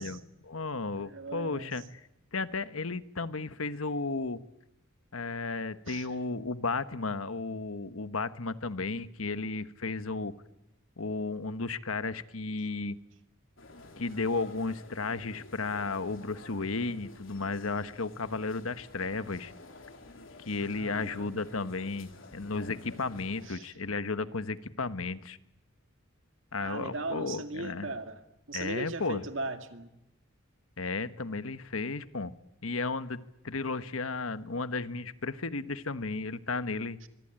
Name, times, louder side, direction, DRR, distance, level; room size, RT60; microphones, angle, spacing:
voice 1, 0.0-1.8 2.3-4.4 5.1-10.3 11.0-13.0 14.0-19.5 20.5-25.4 26.5-27.9 28.5-29.2 30.8-32.3 32.6-33.2 33.4-37.0, left 3 dB, 85° left, 1.3 m, -34 dB
voice 2, 1.0-1.8 5.9-6.1 20.6-21.3 23.4-23.7 26.6-28.2 28.5-29.9 37.0-37.1, right 2 dB, 65° right, 2.2 m, -39 dB
sound 1, 13.6-23.6, left 2 dB, 65° left, 3.9 m, -51 dB
25.0 x 24.0 x 9.0 m
head